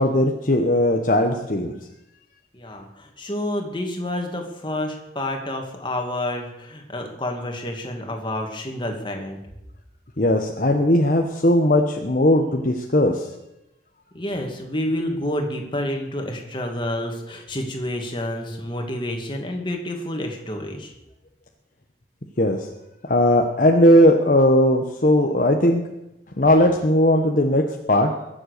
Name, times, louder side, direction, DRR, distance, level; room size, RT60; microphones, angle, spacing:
voice 1, 0.0-1.7 10.2-13.3 22.4-22.7 23.0-25.8 26.4-28.1, left 1 dB, 50° left, 2 dB, 1.1 m, -18 dB
voice 2, 2.5-9.4 14.1-20.9, left 1 dB, 25° left, 3 dB, 2.3 m, -29 dB
22.0 x 7.8 x 6.7 m, 0.91 s
head